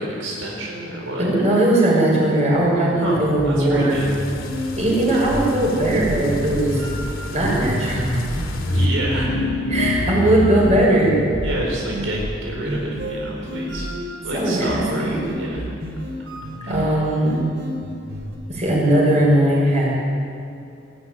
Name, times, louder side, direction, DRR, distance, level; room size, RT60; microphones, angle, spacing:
voice 1, 0.0-1.3 3.0-4.1 4.5-4.8 8.7-9.4 10.2-10.3 11.4-13.9 14.2-15.7 16.6-16.7, right 1 dB, 80° right, -2 dB, 4.4 m, -28 dB
voice 2, 1.2-4.0 4.8-6.8 7.3-8.2 9.7-11.3 14.3-15.3 16.7-17.5 18.5-19.9, right 1 dB, 35° right, -4 dB, 7.2 m, -19 dB
sound 1, 3.0-18.4, equal, 60° right, 5.0 m, -31 dB
sound 2, 3.9-8.9, left 1 dB, 90° left, 3.2 m, -29 dB
sound 3, 9.2-11.0, left 3 dB, 65° left, 1.8 m, -25 dB
21.5 x 15.0 x 9.6 m, 2.5 s
head